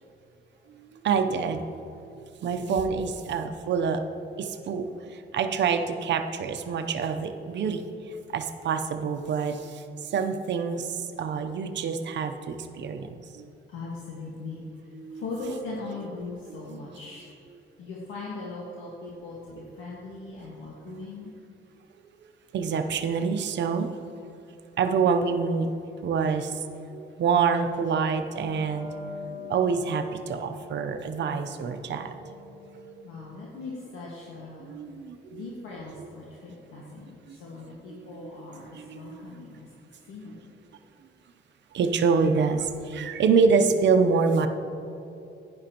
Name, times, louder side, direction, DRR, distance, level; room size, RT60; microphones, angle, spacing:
voice 1, 0.7-4.0 4.4-13.5 14.9-15.2 16.5-16.6 20.8-21.3 22.5-23.9 24.8-25.7 26.0-33.1 34.6-35.4 36.0-36.1 37.3-37.4 37.9-38.3 38.7-39.3 41.7-44.5, right 5 dB, 65° right, 7 dB, 0.7 m, -27 dB
voice 2, 13.7-17.3 17.8-21.3 33.0-34.7 35.3-39.7 40.1-40.4, left 3 dB, 85° left, -5 dB, 1.6 m, -39 dB
Wind instrument woodwind instrument, 28.4-33.5, left 4 dB, 25° right, 2.5 m, -45 dB
11.0 x 10.5 x 2.9 m, 2.9 s
cardioid pair, 90°, 20 cm